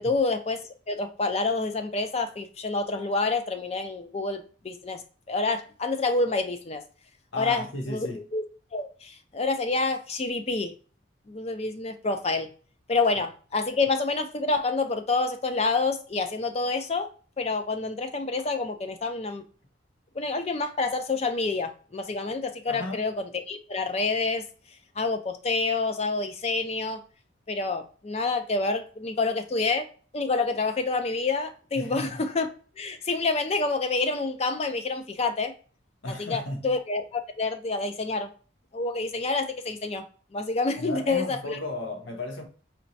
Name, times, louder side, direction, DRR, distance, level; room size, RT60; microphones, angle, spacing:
voice 1, 0.0-5.0 5.3-6.8 7.3-8.1 8.3-8.4 8.7-10.7 11.3-12.5 12.9-17.1 17.4-19.4 20.1-24.5 25.0-27.0 27.5-29.9 30.1-32.5 32.8-35.5 36.2-38.3 38.7-40.0 40.3-41.6, left 3 dB, 30° left, 0.4 m, -28 dB
voice 2, 7.3-8.2 22.7-23.0 31.7-32.3 36.0-36.8 40.8-42.4, left 2 dB, 85° left, 0.9 m, -35 dB
4.4 x 3.0 x 2.6 m
head